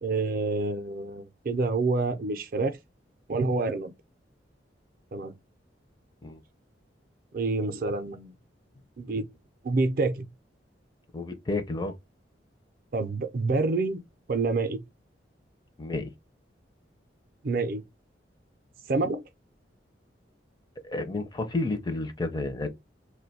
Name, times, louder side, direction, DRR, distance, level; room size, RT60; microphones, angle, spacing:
voice 1, 0.0-2.7 3.3-3.9 5.1-5.3 7.3-8.3 9.0-9.3 9.6-10.3 12.9-14.0 14.3-14.8 17.4-17.8 18.9-19.2, right 3 dB, 50° right, 0.5 m, -27 dB
voice 2, 11.1-11.9 15.8-16.1 20.8-22.7, left 2 dB, 25° left, 0.4 m, -31 dB
2.5 x 2.2 x 4.0 m
head